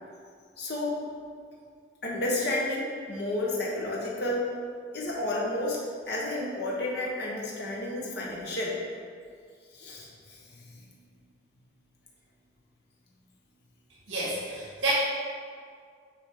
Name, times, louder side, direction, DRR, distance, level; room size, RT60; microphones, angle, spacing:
voice 1, 0.6-1.0 2.0-4.5 4.9-5.8 6.1-8.8 9.7-10.1 10.6-10.7, left 1 dB, 55° left, -4 dB, 1.1 m, -31 dB
voice 2, 14.1-14.9, right 3 dB, 75° right, -8 dB, 1.8 m, -30 dB
7.8 x 4.5 x 3.7 m, 2.1 s
head